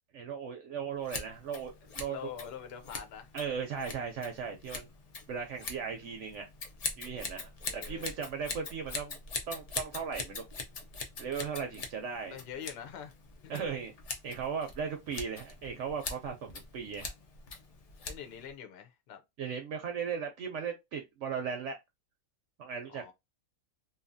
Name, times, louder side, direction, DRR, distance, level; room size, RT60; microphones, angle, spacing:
voice 1, 0.1-2.2 3.3-4.9 5.3-6.5 7.0-9.2 9.5-10.4 11.2-12.4 13.5-13.9 14.2-17.1 19.4-21.8 22.6-23.1, right 6 dB, 65° right, 0.8 m, -37 dB
Scissors, 1.0-18.5, left 4 dB, 80° left, 0.3 m, -43 dB
voice 2, 2.1-3.3 7.6-8.1 12.3-13.1 13.4-13.8 18.1-19.2 22.9-23.1, left 8 dB, 55° left, 0.8 m, -44 dB
2.7 x 2.4 x 2.5 m
omnidirectional pair, 1.5 m